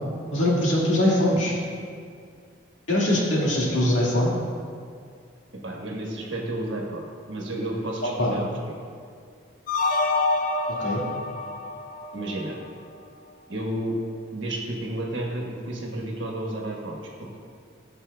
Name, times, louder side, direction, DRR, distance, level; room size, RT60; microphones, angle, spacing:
voice 1, 0.3-1.5 2.9-4.3 8.2-8.3 10.8-11.0, left 1 dB, 80° left, -5 dB, 1.8 m, -22 dB
voice 2, 5.6-8.8 12.1-12.6 13.5-13.9 14.3-17.4, right 1 dB, 70° right, -1 dB, 1.3 m, -32 dB
sound 1, 9.7-12.8, left 3 dB, 45° left, 0.4 m, -27 dB
13.5 x 6.0 x 2.2 m, 2.2 s
head